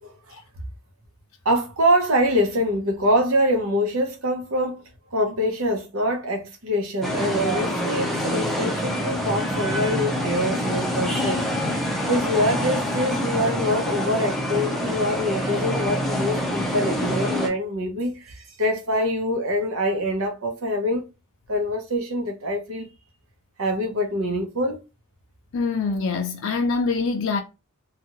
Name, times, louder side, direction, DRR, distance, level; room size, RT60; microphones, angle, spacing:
voice 1, 1.4-4.8 5.1-11.4 12.1-21.0 21.5-22.9 23.6-24.8, equal, 75° right, 0.8 m, -24 dB
sound 1, 7.0-17.5, equal, ahead, 0.6 m, -26 dB
voice 2, 25.5-27.4, left 4 dB, 65° left, 0.4 m, -24 dB
2.6 x 2.4 x 2.8 m
head